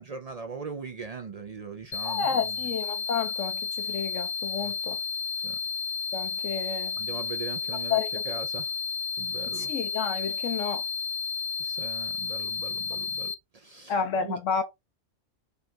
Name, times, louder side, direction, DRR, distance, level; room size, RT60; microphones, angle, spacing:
voice 1, 0.0-2.6 4.6-4.7 5.3-5.6 7.0-8.8 9.2-9.7 11.6-14.4, right 5 dB, 50° right, 0.4 m, -40 dB
sound 1, 1.9-13.3, left 5 dB, 50° left, 0.7 m, -32 dB
voice 2, 2.0-5.0 6.1-7.0 7.9-8.2 9.5-10.8 13.9-14.6, left 6 dB, 80° left, 1.0 m, -30 dB
5.1 x 2.4 x 4.3 m
omnidirectional pair, 1.3 m